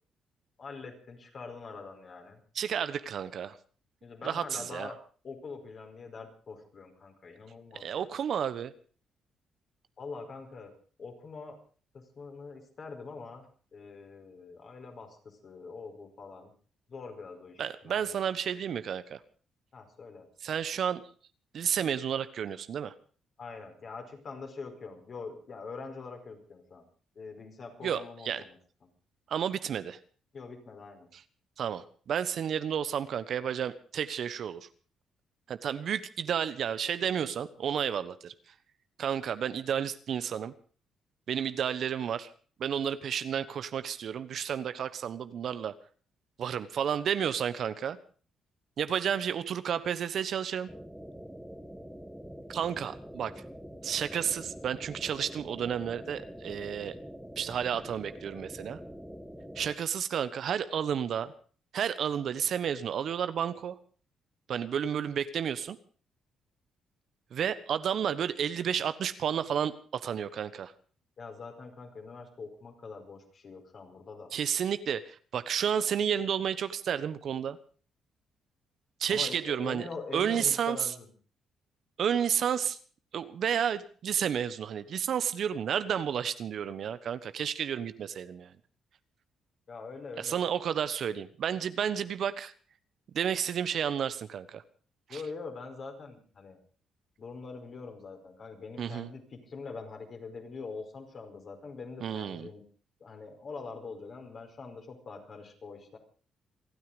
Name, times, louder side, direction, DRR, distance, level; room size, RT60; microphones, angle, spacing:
voice 1, 0.6-2.4 4.0-4.9 5.2-8.1 10.0-10.7 11.0-11.6 11.9-16.5 16.9-18.1 19.7-20.3 23.4-26.8 27.1-28.9 30.3-31.1 71.2-74.3 79.1-81.1 89.7-90.4 95.1-96.6 97.2-102.6 103.0-106.0, left 4 dB, 50° left, 4 dB, 4.9 m, -44 dB
voice 2, 2.5-3.6 4.2-4.9 7.7-8.7 17.6-19.2 20.4-21.0 21.5-22.9 27.8-28.4 29.3-30.0 31.1-31.2 31.6-34.7 35.5-38.3 39.0-40.5 41.3-42.3 42.6-45.7 46.4-48.0 48.8-50.7 52.5-53.3 53.8-56.9 57.4-58.8 59.5-61.3 61.7-63.7 64.5-65.8 67.3-70.7 74.3-77.6 79.0-79.9 80.1-80.9 82.0-82.8 83.1-88.5 90.2-92.5 93.1-94.6 95.1-95.2 98.8-99.1 102.0-102.5, right 8 dB, 60° right, 13 dB, 1.2 m, -31 dB
sound 1, 50.7-59.7, equal, ahead, 2.0 m, -45 dB
28.0 x 9.6 x 5.2 m, 0.41 s
cardioid pair, 90°, 0 cm